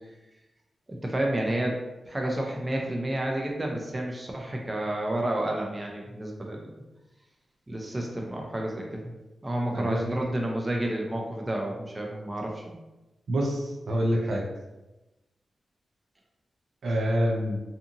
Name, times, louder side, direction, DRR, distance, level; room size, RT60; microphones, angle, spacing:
voice 1, 0.9-1.8 2.1-6.7 7.7-9.0 9.4-12.8, right 1 dB, 25° right, 0 dB, 0.4 m, -30 dB
voice 2, 13.3-14.4 16.8-17.6, equal, 75° right, -1 dB, 0.4 m, -26 dB
2.7 x 2.5 x 2.5 m, 1.0 s
wide cardioid pair, 95°, 0 cm